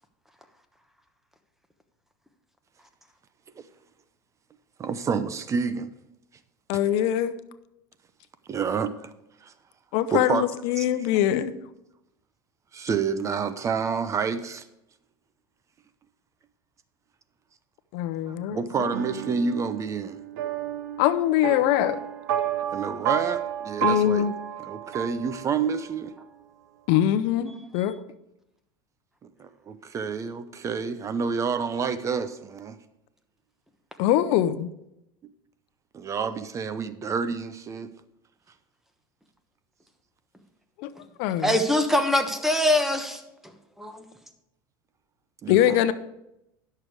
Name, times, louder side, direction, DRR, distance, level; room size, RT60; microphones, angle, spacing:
voice 1, 4.8-5.9 8.5-9.1 9.4-9.5 10.1-10.5 10.8-10.9 12.7-14.6 18.3-20.2 22.7-24.3 24.6-26.1 29.4-32.8 35.9-37.9 45.4-45.8, right 5 dB, 30° right, 0.6 m, -29 dB
voice 2, 6.7-7.3 9.9-11.5 17.9-18.9 21.0-22.0 23.8-24.3 26.9-28.0 34.0-34.5 40.8-40.9 41.2-41.6 45.5-45.9, left 11 dB, 65° left, 0.7 m, -23 dB
sound 1, 18.9-25.9, right 11 dB, 80° right, 0.9 m, -31 dB
voice 3, 41.4-43.2 43.8-44.0, left 1 dB, 5° right, 1.2 m, -23 dB
10.5 x 6.7 x 4.8 m
supercardioid pair, 110°, 11 cm